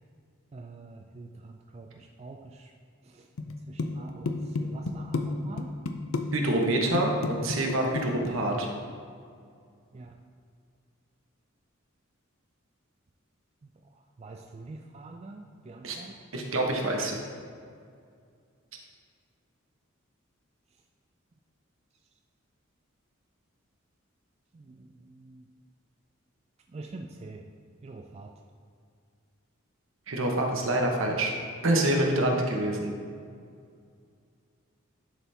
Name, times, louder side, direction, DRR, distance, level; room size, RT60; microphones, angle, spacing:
voice 1, 0.5-2.7 3.1-3.3 3.7-5.7 9.9-10.2 14.2-16.1 24.5-25.4 26.7-27.4 27.8-28.3, right 3 dB, 30° right, 3 dB, 0.3 m, -45 dB
sound 1, 3.4-3.5 3.8-5.3 5.6-6.2 6.5-6.7 6.9-8.3, left 3 dB, 80° left, 0.5 m, -30 dB
voice 2, 6.3-8.7 15.8-16.0 16.3-17.2 30.1-31.3 31.6-32.9, right 1 dB, 70° right, 1 dB, 1.1 m, -26 dB
11.0 x 4.3 x 3.4 m, 2.2 s
head